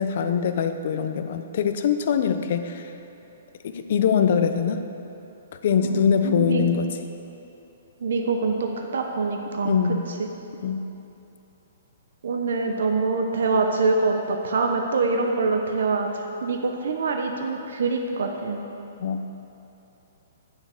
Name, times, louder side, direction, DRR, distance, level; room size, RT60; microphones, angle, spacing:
voice 1, 0.0-2.9 3.6-4.8 5.6-6.9 9.6-10.1 10.6-10.9 19.0-19.3, left 7 dB, 50° left, 8 dB, 0.8 m, -23 dB
voice 2, 5.8-6.7 8.0-9.7 10.2-10.3 12.2-18.7, right 3 dB, 70° right, 3 dB, 1.0 m, -25 dB
9.9 x 9.5 x 6.6 m, 2.9 s
hypercardioid pair, 165°, 0 cm